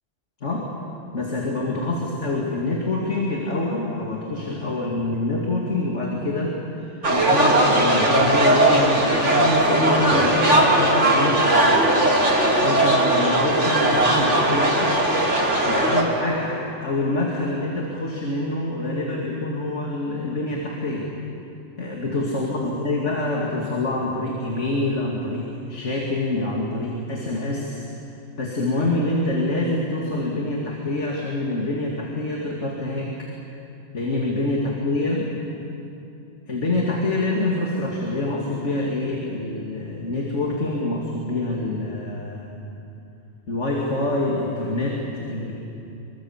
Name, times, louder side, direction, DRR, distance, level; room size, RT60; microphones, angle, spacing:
voice 1, 0.4-0.7 1.1-11.9 12.6-15.0 15.7-21.1 21.8-27.9 28.4-33.1 33.9-35.3 36.5-42.7 43.5-45.5, left 2 dB, 75° left, -2 dB, 2.8 m, -26 dB
sound 1, 7.0-16.0, right 1 dB, 80° right, 3.7 m, -18 dB
26.0 x 24.0 x 7.3 m, 2.7 s
omnidirectional pair, 1.2 m